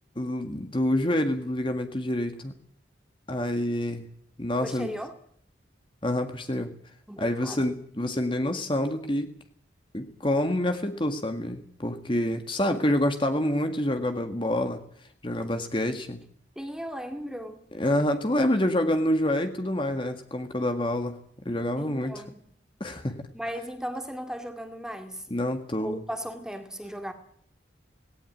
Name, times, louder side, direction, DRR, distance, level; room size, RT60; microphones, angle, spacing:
voice 1, 0.2-2.5 3.3-4.1 4.4-4.9 6.0-6.7 7.2-9.3 9.9-14.8 15.2-16.2 17.8-21.2 21.5-22.2 22.8-23.2 25.3-26.0, left 1 dB, 30° left, 1.8 m, -27 dB
voice 2, 4.6-5.1 7.1-7.8 16.6-17.7 21.8-22.5 23.3-25.3 25.8-27.1, equal, 5° right, 2.2 m, -36 dB
18.5 x 18.0 x 9.3 m
head